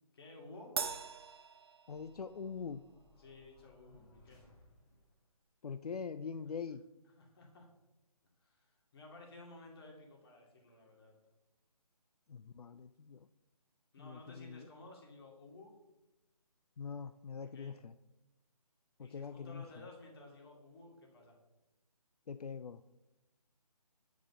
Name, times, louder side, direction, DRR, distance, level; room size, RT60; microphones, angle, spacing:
voice 1, 0.1-0.8 3.2-4.4 7.2-7.7 8.4-11.1 13.9-15.7 17.4-17.7 19.0-21.4, left 2 dB, 40° left, -1 dB, 2.3 m, -55 dB
Crash cymbal, 0.8-2.4, right 6 dB, 40° right, 0.6 m, -41 dB
voice 2, 1.9-2.8 5.6-6.8 12.3-13.3 14.0-14.7 16.8-17.9 19.0-19.6 22.3-22.8, left 6 dB, 75° left, 11 dB, 0.4 m, -43 dB
sound 1, 1.9-5.2, left 2 dB, 15° left, 2.3 m, -64 dB
9.1 x 5.0 x 5.5 m, 0.97 s
figure-of-eight pair, 155°, 20 cm